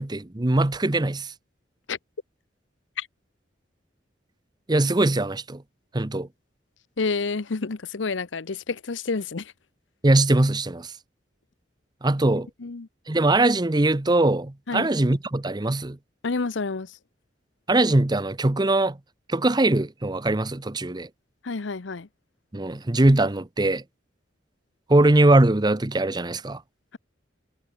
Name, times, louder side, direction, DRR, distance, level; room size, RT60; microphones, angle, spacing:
voice 1, 0.0-1.3 4.7-5.6 5.9-6.3 10.0-10.9 12.0-12.5 13.1-16.0 17.7-19.0 19.3-21.1 22.5-23.8 24.9-26.6, right 2 dB, 20° right, 0.8 m, -21 dB
voice 2, 7.0-9.5 12.6-12.9 14.7-14.9 16.2-16.9 21.4-22.1, left 4 dB, 80° left, 0.8 m, -29 dB
head